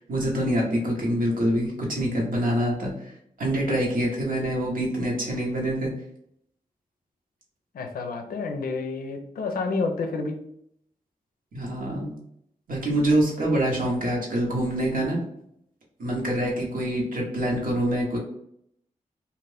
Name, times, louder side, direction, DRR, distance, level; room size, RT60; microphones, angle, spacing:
voice 1, 0.1-3.1 3.4-5.9 11.5-12.1 12.7-15.2 16.0-18.2, right 1 dB, 75° right, -2 dB, 1.1 m, -25 dB
voice 2, 7.7-10.4, left 3 dB, 90° left, 5 dB, 0.5 m, -29 dB
2.6 x 2.4 x 3.3 m, 0.72 s
cardioid pair, 50°, 15 cm